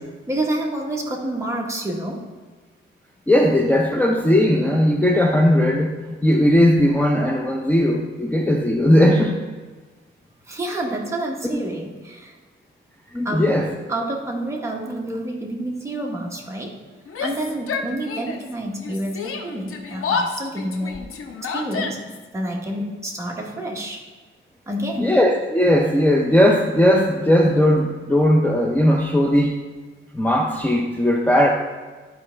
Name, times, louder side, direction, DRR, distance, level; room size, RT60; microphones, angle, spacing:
voice 1, 0.3-2.2 10.5-12.4 13.2-13.6 13.9-16.7 17.2-21.0 21.4-24.0 24.7-25.1, right 1 dB, 15° right, -1 dB, 1.1 m, -28 dB
voice 2, 3.3-9.4 11.5-11.6 13.1-13.7 25.0-29.5 30.1-31.5, left 1 dB, 10° left, 0 dB, 0.5 m, -18 dB
Yell, 17.1-18.5 18.8-22.3, left 5 dB, 85° left, 0.8 m, -29 dB
12.0 x 4.7 x 3.3 m, 1.4 s
wide cardioid pair, 145°, 21 cm